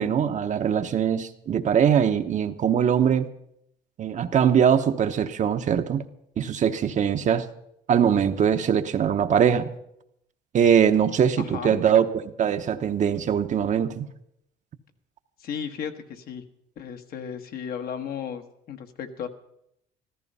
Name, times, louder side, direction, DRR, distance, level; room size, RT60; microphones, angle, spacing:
voice 1, 0.0-3.3 4.0-6.0 6.4-7.5 7.9-9.7 10.5-14.1, right 8 dB, 45° right, 8 dB, 0.9 m, -22 dB
voice 2, 11.4-11.8 15.4-16.4 16.8-19.3, left 7 dB, 65° left, 6 dB, 1.3 m, -35 dB
14.0 x 13.5 x 5.5 m, 0.77 s
cardioid pair, 110°, 17 cm